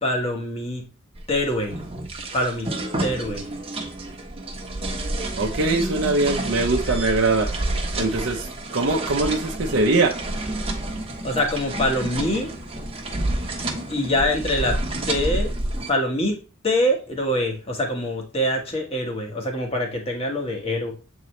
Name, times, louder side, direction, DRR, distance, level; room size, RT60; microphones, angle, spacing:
voice 1, 0.0-0.9 1.3-1.8 2.3-2.7 3.0-3.4 11.2-12.5 13.9-14.8 15.1-15.5 15.9-16.4 16.6-20.9, left 1 dB, 25° left, 1.3 m, -24 dB
sound 1, 1.2-15.9, right 1 dB, 25° right, 1.0 m, -29 dB
voice 2, 5.4-7.6 8.0-10.1, right 2 dB, 55° right, 0.7 m, -22 dB
8.2 x 3.9 x 3.2 m
head